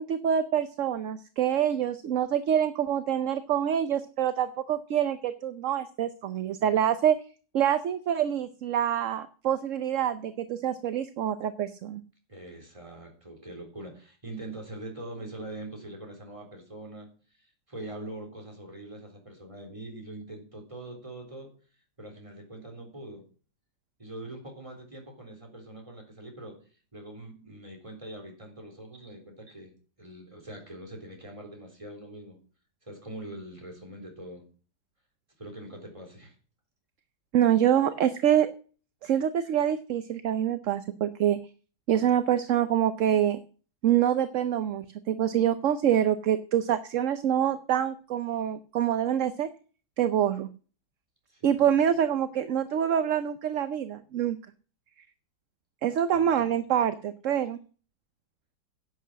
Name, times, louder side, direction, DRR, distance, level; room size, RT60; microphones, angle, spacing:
voice 1, 0.0-7.2 7.5-12.0 37.3-38.5 39.0-41.4 41.9-43.4 43.8-49.5 50.0-50.5 51.4-54.4 55.8-57.6, right 10 dB, 60° right, 11 dB, 0.9 m, -26 dB
voice 2, 12.3-21.5 22.0-23.2 24.0-26.6 26.9-29.7 30.0-32.4 32.8-34.4 35.4-36.4 39.0-39.1 51.3-51.8 56.1-56.5, right 1 dB, 20° right, 2 dB, 3.9 m, -43 dB
11.0 x 7.9 x 7.4 m, 0.40 s
omnidirectional pair, 1.8 m